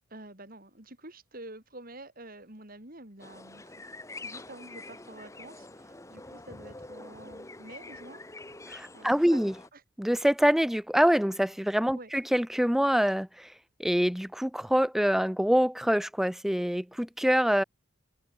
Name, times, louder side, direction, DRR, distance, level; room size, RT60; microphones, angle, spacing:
voice 1, 0.1-3.7 4.2-8.2 8.9-9.8 11.9-12.1, right 1 dB, 40° right, 3.4 m, -48 dB
sound 1, 3.2-9.7, left 2 dB, 15° left, 1.1 m, -46 dB
voice 2, 8.7-9.5 10.0-13.5 13.8-17.6, equal, ahead, 0.3 m, -25 dB
head